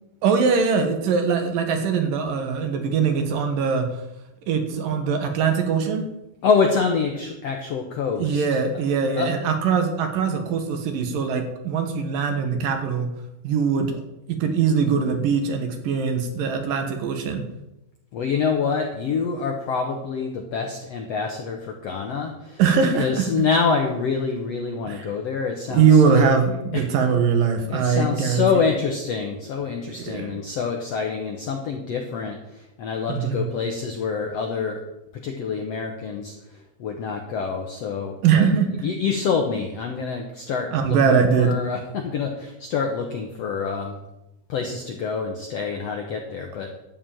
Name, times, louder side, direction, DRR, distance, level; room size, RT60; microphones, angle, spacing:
voice 1, 0.2-3.9 4.5-6.0 8.2-13.1 13.4-14.0 14.3-17.4 22.6-23.3 24.9-25.1 25.7-28.8 29.9-30.3 33.1-33.5 38.2-38.7 40.7-41.5, right 6 dB, 70° right, 5 dB, 2.9 m, -21 dB
voice 2, 6.4-8.6 9.2-9.3 18.1-26.3 26.7-26.8 27.7-32.4 32.8-34.8 35.2-36.3 36.8-38.5 38.8-44.0 44.5-46.7, left 5 dB, 70° left, 3 dB, 1.5 m, -26 dB
12.0 x 5.5 x 8.8 m, 0.91 s
omnidirectional pair, 4.3 m